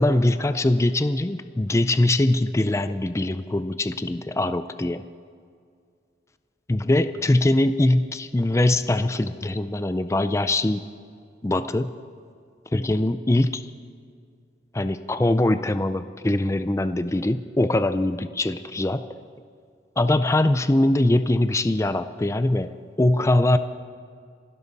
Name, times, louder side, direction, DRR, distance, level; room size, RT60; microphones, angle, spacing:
voice 1, 0.0-5.0 6.7-10.8 11.4-11.9 12.7-13.6 14.7-19.0 20.0-23.6, left 1 dB, 15° left, 11 dB, 0.4 m, -22 dB
27.5 x 12.5 x 4.1 m, 2.2 s
head